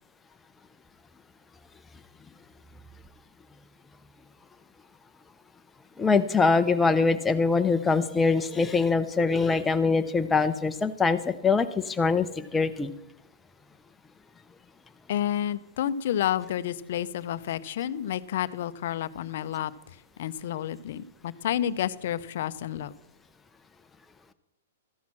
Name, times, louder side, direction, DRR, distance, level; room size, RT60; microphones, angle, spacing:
voice 1, 6.0-12.9, left 4 dB, 10° left, 8 dB, 0.5 m, -23 dB
voice 2, 15.1-19.7 20.2-22.9, left 11 dB, 55° left, 15 dB, 0.5 m, -30 dB
13.0 x 6.0 x 6.0 m, 0.91 s
hypercardioid pair, 155°, 0 cm